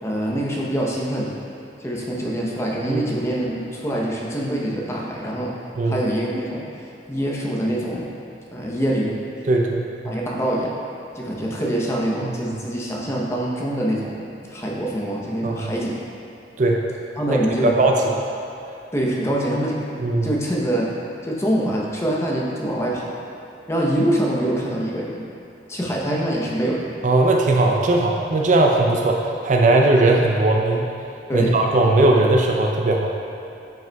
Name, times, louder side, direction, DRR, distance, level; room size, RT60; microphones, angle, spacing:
voice 1, 0.0-1.3 1.8-5.5 5.8-6.7 7.1-8.1 8.5-9.2 10.0-10.7 11.1-16.0 17.2-17.7 18.9-19.8 20.2-20.9 21.2-23.1 23.7-25.3 25.7-27.0 31.3-31.5, right 1 dB, 15° left, -3 dB, 0.7 m, -24 dB
voice 2, 9.5-10.2 12.2-12.3 15.4-15.7 16.6-16.8 17.3-18.0 20.0-20.3 27.0-30.9 31.3-33.1, right 2 dB, 45° right, 1 dB, 0.4 m, -18 dB
9.1 x 5.3 x 2.3 m, 2.7 s
head